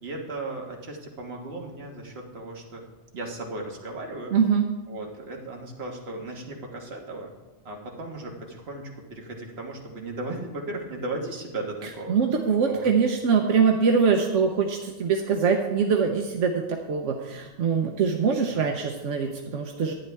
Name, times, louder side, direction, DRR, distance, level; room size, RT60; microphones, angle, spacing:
voice 1, 0.0-2.8 3.1-4.3 4.9-7.3 7.6-12.2 12.7-12.9 18.4-18.7, right 2 dB, 55° right, 0 dB, 1.6 m, -36 dB
voice 2, 4.3-4.7 12.1-19.9, right 6 dB, 85° right, 3 dB, 1.2 m, -23 dB
11.5 x 9.6 x 3.4 m, 1.1 s
omnidirectional pair, 1.2 m